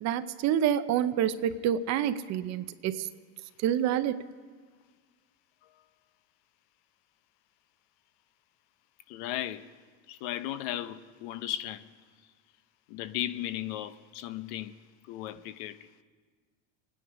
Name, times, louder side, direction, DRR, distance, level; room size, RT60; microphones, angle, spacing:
voice 1, 0.0-3.1 3.6-4.2, right 10 dB, 45° right, 0.7 m, -28 dB
voice 2, 9.1-9.7 10.1-11.9 12.9-15.9, left 12 dB, 70° left, 0.8 m, -36 dB
26.5 x 10.0 x 5.0 m
supercardioid pair, 130°, 37 cm